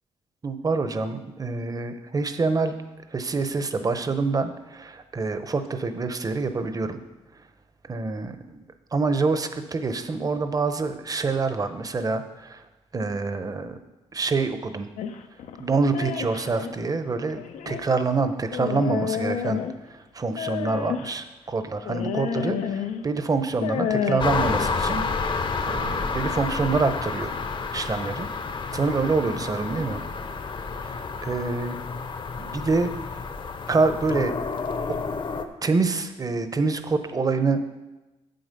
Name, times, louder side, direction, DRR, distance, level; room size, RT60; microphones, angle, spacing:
voice 1, 0.4-2.8 3.1-7.0 7.9-8.6 8.9-12.6 12.9-13.8 14.1-14.9 15.6-17.4 17.7-19.6 19.9-27.3 27.7-28.3 28.7-30.0 30.8-31.8 32.4-32.9 33.7-34.3 35.6-37.7, right 4 dB, 30° right, 9 dB, 0.8 m, -26 dB
sound 1, 15.0-16.7 17.4-17.9 18.5-19.9 20.4-21.2 21.9-23.0 23.5-24.2, left 8 dB, 85° left, 0.6 m, -29 dB
sound 2, 24.2-35.4, left 4 dB, 45° left, 0.8 m, -30 dB
7.8 x 7.8 x 5.3 m, 1.1 s
cardioid pair, 90°, 12 cm